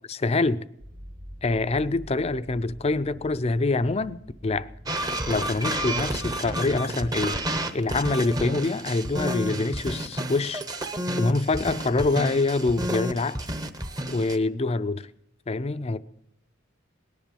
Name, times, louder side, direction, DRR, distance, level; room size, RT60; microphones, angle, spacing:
voice 1, 0.1-0.6 1.4-4.7 5.3-7.4 7.7-10.6 11.1-13.4 14.1-15.1 15.5-16.0, left 3 dB, 30° left, 0.5 m, -25 dB
sound 1, 0.8-6.4, equal, 75° right, 2.7 m, -45 dB
sound 2, 4.9-14.4, right 1 dB, 20° right, 0.8 m, -30 dB
19.0 x 10.5 x 5.2 m
head